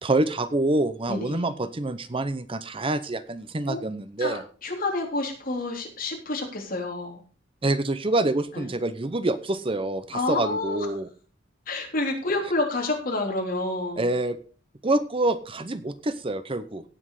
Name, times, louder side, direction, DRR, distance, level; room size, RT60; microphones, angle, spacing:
voice 1, 0.0-4.4 7.6-11.1 14.0-14.4 14.8-16.8, right 2 dB, 30° right, 12 dB, 0.8 m, -26 dB
voice 2, 1.1-1.5 3.7-3.8 4.2-7.2 8.5-8.7 10.1-10.9 11.7-14.1, left 2 dB, 50° left, 1 dB, 3.4 m, -29 dB
17.0 x 6.2 x 4.8 m, 0.39 s
head